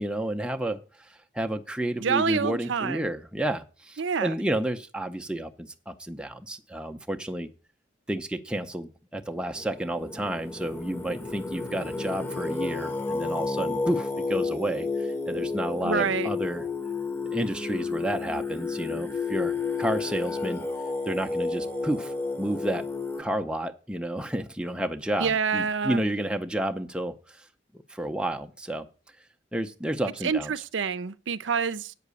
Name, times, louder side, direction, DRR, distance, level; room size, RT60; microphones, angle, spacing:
voice 1, 0.0-7.5 8.1-16.6 17.3-19.5 19.8-20.6 21.1-22.9 23.2-27.4 27.9-28.9 29.5-30.5, right 1 dB, 5° right, 0.6 m, -31 dB
voice 2, 2.0-3.1 4.0-4.4 15.8-16.3 25.2-26.0 30.2-31.9, right 6 dB, 70° right, 0.6 m, -27 dB
Singing, 9.4-23.2, left 4 dB, 10° left, 0.9 m, -31 dB
8.3 x 6.0 x 8.1 m
head